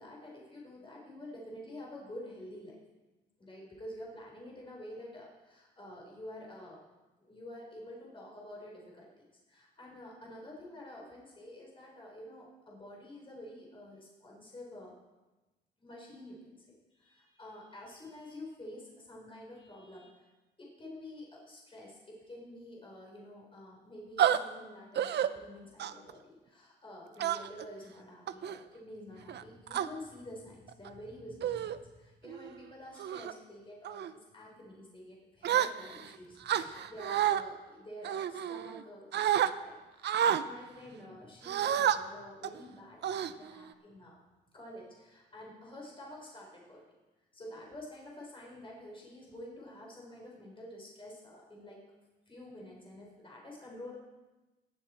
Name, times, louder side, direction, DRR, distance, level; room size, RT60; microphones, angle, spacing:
voice 1, 0.0-2.8 3.4-6.8 7.2-9.1 9.5-14.9 15.8-20.3 20.6-44.2 44.5-46.8 47.3-51.8 52.3-54.0, left 1 dB, 25° left, -3 dB, 4.0 m, -49 dB
sound 1, 24.2-24.4 25.0-25.3 25.8-26.1 27.2-27.6 28.3-28.6 29.3-29.9 30.7-30.9 31.4-31.8 32.3-32.5 33.0-33.3 33.8-34.1 35.4-36.1 36.5-37.4 38.0-38.8 39.1-39.5 40.0-40.4 41.4-42.0 42.4-42.6 43.0-43.7, right 10 dB, 60° right, 0.6 m, -30 dB
18.5 x 7.7 x 4.4 m, 1.1 s
cardioid pair, 90°, 20 cm